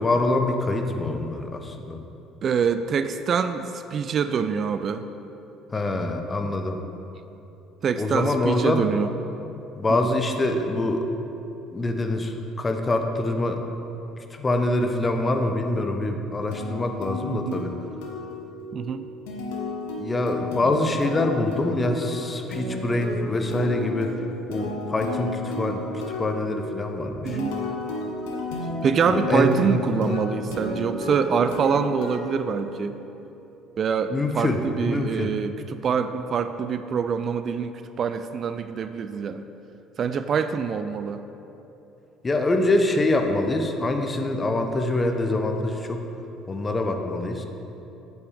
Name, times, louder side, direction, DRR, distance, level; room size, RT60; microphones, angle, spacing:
voice 1, 0.0-2.0 5.7-6.8 8.0-8.9 9.8-11.1 11.7-13.6 14.3-17.8 20.0-24.1 24.5-25.9 26.2-27.4 29.1-30.1 34.1-35.3 42.2-46.0 46.5-47.5, left 2 dB, 25° left, 5 dB, 0.8 m, -25 dB
voice 2, 2.4-5.1 7.8-9.1 17.3-17.6 18.7-19.1 27.2-27.6 28.8-33.0 33.8-39.4 40.0-41.2, right 6 dB, 45° right, 10 dB, 0.3 m, -25 dB
sound 1, 16.5-33.2, left 2 dB, 70° left, 1.0 m, -33 dB
8.4 x 8.3 x 3.4 m, 3.0 s
figure-of-eight pair, 55°, 0 cm